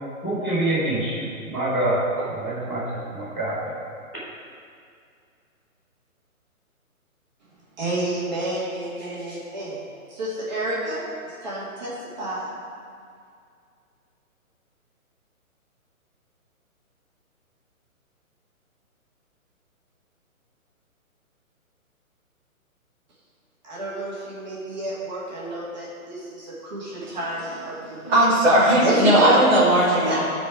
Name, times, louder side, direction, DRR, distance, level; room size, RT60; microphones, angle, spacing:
voice 1, 0.2-3.7, right 1 dB, 5° left, -20 dB, 1.1 m, -26 dB
voice 2, 7.8-9.8 10.1-11.9 12.2-12.5 23.6-28.2 28.8-29.4 30.0-30.2, right 1 dB, 30° right, -7 dB, 2.1 m, -29 dB
voice 3, 28.0-30.2, right 1 dB, 10° right, -13 dB, 2.5 m, -17 dB
13.5 x 4.6 x 4.9 m, 2.3 s
hypercardioid pair, 175°, 43 cm